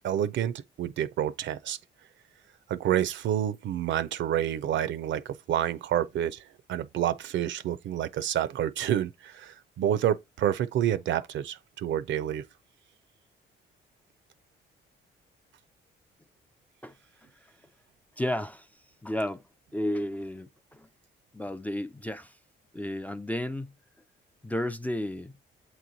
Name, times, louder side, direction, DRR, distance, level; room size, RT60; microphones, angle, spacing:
voice 1, 0.0-1.8 2.7-6.4 6.7-12.4, right 11 dB, 70° right, 0.5 m, -28 dB
voice 2, 18.2-18.7 19.0-19.4 19.7-20.9 21.3-22.3 22.7-23.7 24.4-25.3, left 1 dB, 10° left, 0.4 m, -32 dB
7.9 x 3.1 x 3.9 m
cardioid pair, 90°, 20 cm